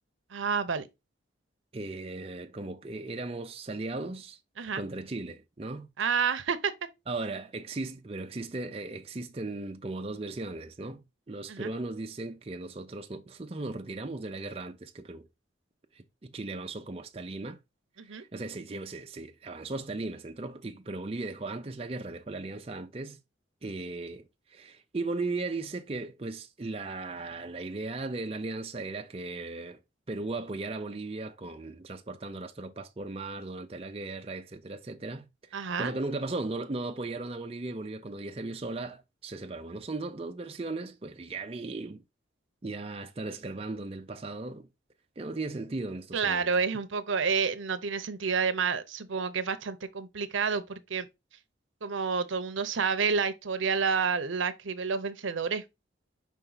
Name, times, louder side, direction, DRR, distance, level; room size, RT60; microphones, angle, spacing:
voice 1, 0.3-0.9 4.6-4.8 6.0-6.7 11.5-11.7 18.0-18.2 35.5-35.9 46.1-51.1 51.8-55.6, right 5 dB, 80° right, 0.7 m, -29 dB
voice 2, 1.7-5.9 7.1-15.3 15.9-17.6 18.0-23.2 23.6-29.8 30.1-42.0 42.6-44.7 45.2-46.5, right 2 dB, 30° right, 0.5 m, -37 dB
5.4 x 4.5 x 3.9 m
head